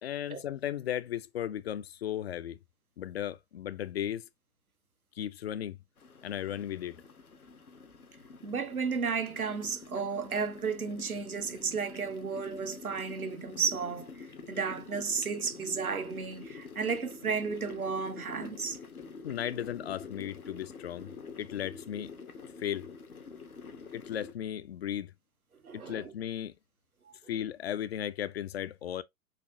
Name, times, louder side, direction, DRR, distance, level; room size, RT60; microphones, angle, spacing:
voice 1, 0.0-2.6 3.0-4.3 5.2-5.8 6.2-7.0 19.2-21.1 21.4-22.1 22.6-22.9 23.9-25.1 25.7-26.5 27.3-29.0, left 10 dB, 50° left, 0.4 m, -35 dB
sound 1, 6.0-24.3, left 4 dB, 85° left, 0.9 m, -47 dB
voice 2, 8.4-18.8 19.6-19.7 25.6-26.1 27.1-27.2, right 5 dB, 80° right, 0.9 m, -33 dB
4.2 x 2.7 x 2.5 m
figure-of-eight pair, 110°, 42 cm